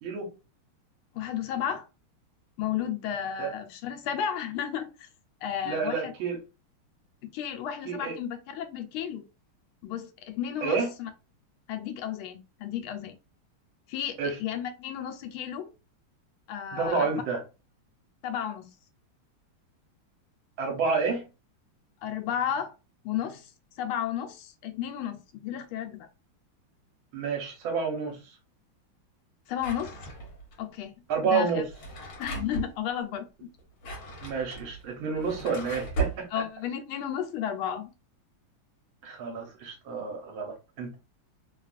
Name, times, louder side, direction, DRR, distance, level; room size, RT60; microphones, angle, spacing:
voice 1, 0.0-0.3 3.4-3.5 5.6-6.4 7.9-8.2 10.6-10.9 14.2-14.4 16.7-17.4 20.6-21.3 27.1-28.4 31.1-31.7 34.2-36.3 39.0-41.0, right 5 dB, 75° right, 1.7 m, -29 dB
voice 2, 1.1-1.9 2.6-5.1 5.4-6.1 7.2-9.3 9.8-11.1 11.7-13.2 13.9-15.7 16.5-17.2 18.2-18.7 22.0-22.7 23.0-23.5 23.8-26.1 29.5-29.9 30.6-30.9 31.2-31.6 32.2-33.3 36.3-37.9, left 9 dB, 80° left, 1.4 m, -33 dB
Drawer open or close, 29.6-30.5 31.6-32.7 33.6-36.2, right 3 dB, 55° left, 1.3 m, -36 dB
3.5 x 2.3 x 2.4 m
omnidirectional pair, 2.3 m